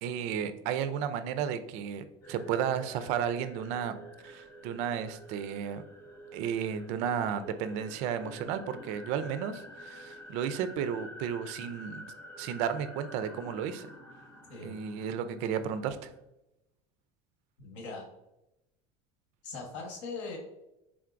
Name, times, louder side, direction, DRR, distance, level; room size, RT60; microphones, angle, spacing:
voice 1, 0.0-5.8 6.3-12.1 12.4-13.9 14.6-16.1, right 8 dB, 45° right, 11 dB, 0.4 m, -33 dB
sound 1, 2.2-16.2, right 1 dB, 15° left, 0.5 m, -49 dB
Chink clink, 2.8-7.2, equal, 50° left, 0.8 m, -59 dB
voice 2, 17.6-18.0 19.4-20.4, left 4 dB, 75° left, 1 dB, 1.3 m, -40 dB
4.5 x 3.6 x 2.5 m, 0.89 s
cardioid pair, 170°, 16 cm